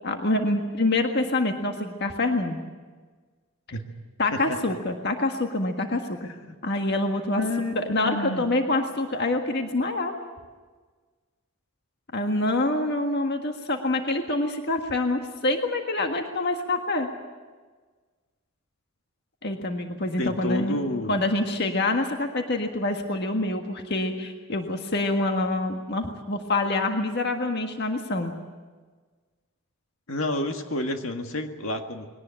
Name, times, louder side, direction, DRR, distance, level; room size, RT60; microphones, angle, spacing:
voice 1, 0.0-2.6 4.2-6.2 6.6-7.4 7.8-10.1 12.1-17.1 19.4-20.8 21.1-28.3, left 2 dB, 50° left, 4 dB, 1.7 m, -26 dB
voice 2, 6.2-6.6 7.4-8.5 20.2-21.2 30.1-32.1, left 1 dB, 70° left, 4 dB, 1.9 m, -30 dB
21.5 x 18.0 x 8.9 m, 1.4 s
head